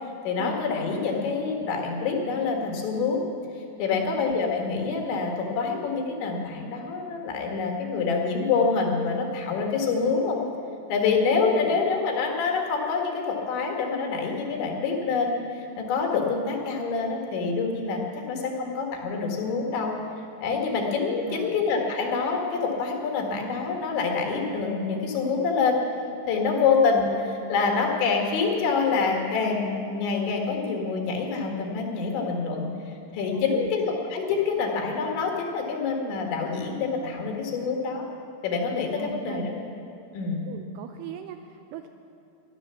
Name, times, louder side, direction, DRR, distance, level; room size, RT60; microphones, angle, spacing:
voice 1, 0.2-3.2 3.8-10.4 10.9-18.0 18.3-20.0 20.4-25.8 26.3-32.7 33.1-38.1 38.4-39.6 40.1-40.5, left 4 dB, 80° left, 2 dB, 4.0 m, -26 dB
voice 2, 11.5-11.8 21.2-21.6 26.6-26.7 33.3-33.8 39.0-39.4 40.5-41.9, right 10 dB, 80° right, 7 dB, 2.4 m, -39 dB
16.5 x 11.5 x 7.0 m, 2.7 s
omnidirectional pair, 5.2 m